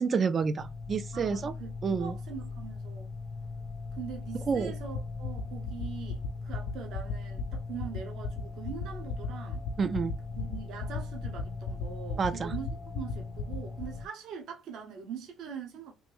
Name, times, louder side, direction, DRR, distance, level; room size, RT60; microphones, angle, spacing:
voice 1, 0.0-1.5 1.8-2.1 4.5-4.7 9.8-10.1 12.2-12.5, right 5 dB, 40° right, 0.3 m, -29 dB
sound 1, 0.6-14.1, left 4 dB, 40° left, 0.5 m, -40 dB
voice 2, 1.1-1.7 2.0-3.1 4.0-9.6 10.3-15.9, right 7 dB, 70° right, 0.9 m, -43 dB
sound 2, 4.9-13.8, left 6 dB, 85° left, 0.5 m, -35 dB
3.2 x 2.5 x 3.3 m
cardioid pair, 100°, 0 cm